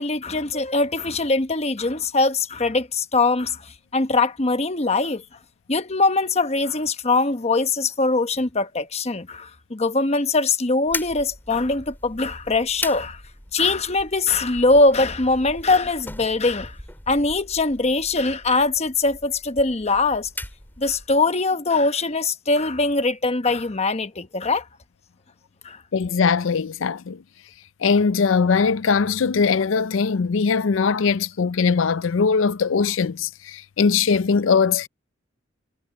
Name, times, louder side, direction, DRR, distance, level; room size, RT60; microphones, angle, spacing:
voice 1, 0.0-3.6 3.9-5.2 5.7-13.2 13.5-16.7 17.1-20.3 20.8-24.6 25.6-25.8, left 3 dB, 35° left, 1.0 m, -22 dB
sound 1, 10.9-21.2, left 2 dB, 10° left, 7.0 m, -38 dB
voice 2, 25.9-27.2 27.8-34.9, left 5 dB, 85° left, 0.5 m, -20 dB
head